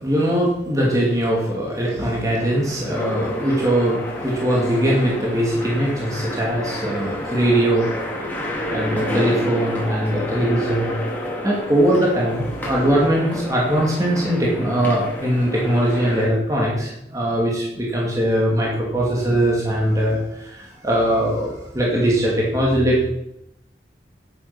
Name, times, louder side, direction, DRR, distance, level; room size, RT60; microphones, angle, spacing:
voice 1, 0.0-11.0 11.4-23.1, right 1 dB, 20° right, -4 dB, 2.4 m, -21 dB
sound 1, 2.0-16.3, left 1 dB, 10° left, 3.2 m, -30 dB
11.0 x 8.8 x 6.0 m, 0.83 s
head